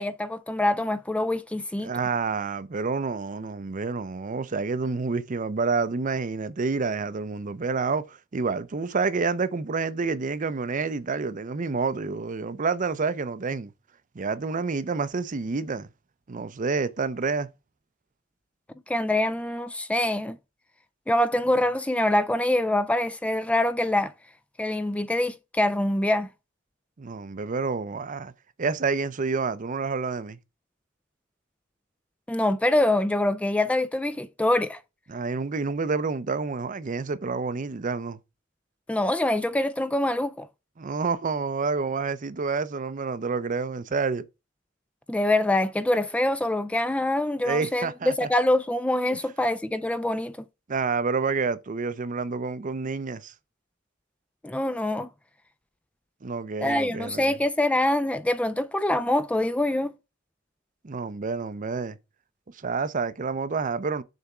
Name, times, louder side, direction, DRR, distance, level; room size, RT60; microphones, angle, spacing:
voice 1, 0.0-1.9 18.9-20.4 21.1-24.1 24.6-26.3 32.3-34.8 38.9-40.5 45.1-50.3 54.4-55.1 56.6-59.9, left 1 dB, 5° left, 0.3 m, -25 dB
voice 2, 1.8-13.7 14.1-15.9 16.3-17.5 27.0-28.3 28.6-30.4 35.1-38.2 40.8-44.2 47.4-48.3 49.1-49.2 50.7-53.3 56.2-57.4 60.8-62.0 62.5-64.0, right 4 dB, 40° right, 0.6 m, -28 dB
6.6 x 3.5 x 5.9 m
head